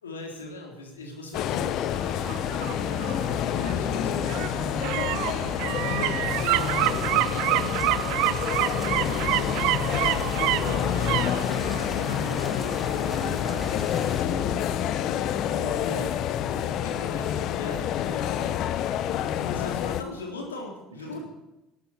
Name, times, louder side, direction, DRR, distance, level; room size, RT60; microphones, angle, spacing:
voice 1, 0.0-4.2 4.7-7.0 7.3-7.8 8.2-9.2 9.5-11.2 11.5-16.1 16.8-18.6 19.2-21.2, left 2 dB, 90° left, 1 dB, 3.6 m, -41 dB
sound 1, 1.3-20.0, left 10 dB, 55° left, 1.0 m, -28 dB
sound 2, 2.0-14.8 15.1-15.2, right 18 dB, 65° right, 0.6 m, -29 dB
sound 3, 6.5-14.2, left 1 dB, 15° left, 3.0 m, -42 dB
voice 2, 6.5-6.9 9.1-9.6 10.4-11.1 15.6-16.7, right 4 dB, 90° right, 0 dB, 3.6 m, -41 dB
17.5 x 13.0 x 6.0 m, 0.97 s
hypercardioid pair, 65°, 0 cm